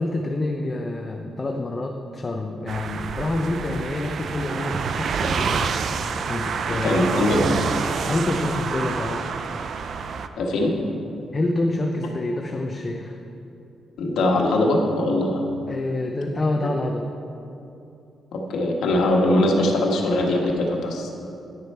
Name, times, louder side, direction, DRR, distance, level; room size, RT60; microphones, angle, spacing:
voice 1, 0.0-5.7 6.3-7.0 7.3-7.7 8.0-9.3 11.3-13.2 15.7-17.1, left 2 dB, 25° left, 2 dB, 0.6 m, -27 dB
sound 1, 2.7-10.3, right 5 dB, 55° right, 0.4 m, -27 dB
voice 2, 6.7-7.4 10.4-10.7 14.0-15.4 18.3-21.1, left 1 dB, 85° left, 0 dB, 1.3 m, -21 dB
10.5 x 6.9 x 4.4 m, 2.8 s
cardioid pair, 125°, 0 cm